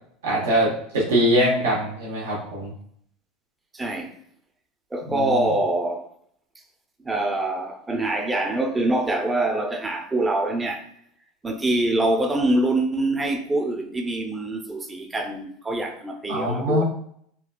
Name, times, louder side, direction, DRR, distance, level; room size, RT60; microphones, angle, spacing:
voice 1, 0.2-2.7 5.1-5.5 16.3-16.8, equal, 90° right, 0.8 m, -23 dB
voice 2, 3.7-4.1 4.9-6.1 7.0-10.9 11.4-16.8, right 2 dB, 15° right, 0.5 m, -24 dB
3.7 x 2.3 x 2.2 m
supercardioid pair, 105°, 0 cm